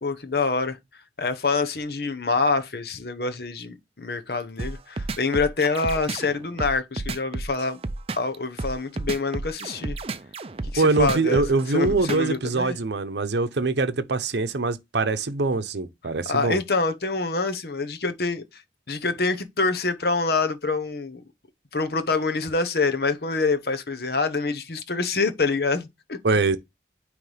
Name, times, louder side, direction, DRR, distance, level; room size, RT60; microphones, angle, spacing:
voice 1, 0.0-0.8 1.2-7.8 8.2-10.0 10.6-12.8 16.3-18.6 18.9-21.2 21.7-26.2, left 3 dB, 60° left, 0.9 m, -26 dB
sound 1, 4.6-12.4, right 3 dB, 35° right, 0.5 m, -31 dB
voice 2, 10.8-16.6 26.2-26.6, right 3 dB, 80° right, 0.7 m, -23 dB
9.3 x 3.2 x 3.3 m
head